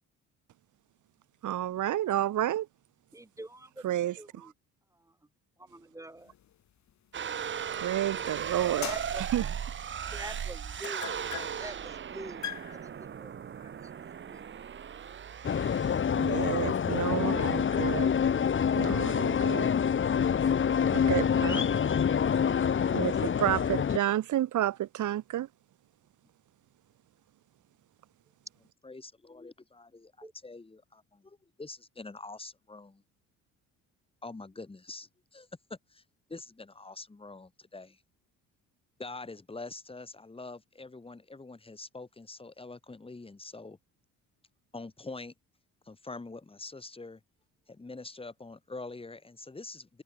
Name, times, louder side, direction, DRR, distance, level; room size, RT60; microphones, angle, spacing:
voice 1, 1.4-2.7 3.8-4.5 7.8-8.9 9.3-9.4 16.2-18.1 18.7-19.7 20.9-21.6 22.9-25.5, right 12 dB, 65° right, 2.5 m, -30 dB
voice 2, 3.1-4.5 5.0-5.1 5.6-6.3 8.8-9.2 10.1-11.0 11.6-14.4 30.2-30.3, right 2 dB, 10° right, 3.1 m, -46 dB
sound 1, 6.3-8.1 8.6-17.1, left 11 dB, 60° left, 3.1 m, -45 dB
sound 2, 7.1-16.0, right 8 dB, 35° right, 1.1 m, -37 dB
sound 3, 15.4-24.0, left 7 dB, 35° left, 1.8 m, -26 dB
voice 3, 28.8-33.0 34.2-35.5 35.9-36.0 36.3-38.0 39.0-43.8 44.7-45.3 45.9-47.2 47.7-50.0, left 3 dB, 15° left, 3.8 m, -45 dB
cardioid pair, 105°, 32 cm